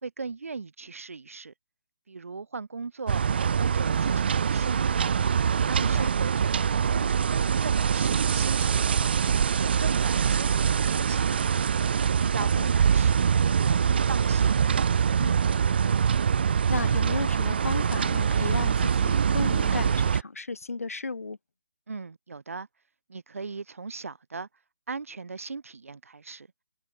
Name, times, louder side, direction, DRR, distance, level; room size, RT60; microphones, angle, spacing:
voice 1, 0.0-1.5 2.1-3.3 3.6-5.0 5.6-9.1 9.6-11.6 12.2-14.6 21.9-22.7 23.1-24.5 24.9-26.5, right 4 dB, 75° right, 4.1 m, -38 dB
sound 1, 3.1-20.2, right 7 dB, 45° right, 0.4 m, -24 dB
voice 2, 5.8-6.1 12.6-12.7 15.2-15.4 16.7-21.4, left 3 dB, 90° left, 7.7 m, -34 dB
hypercardioid pair, 165°, 8 cm